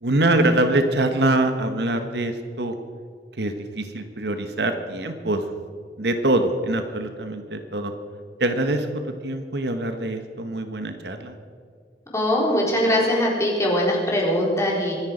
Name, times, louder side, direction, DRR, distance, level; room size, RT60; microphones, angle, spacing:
voice 1, 0.0-2.8 3.4-5.4 6.0-7.9 8.4-11.3, right 2 dB, 65° right, 7 dB, 1.2 m, -24 dB
voice 2, 12.1-14.9, left 1 dB, 15° left, -3 dB, 3.8 m, -21 dB
24.5 x 10.5 x 5.1 m, 2.1 s
head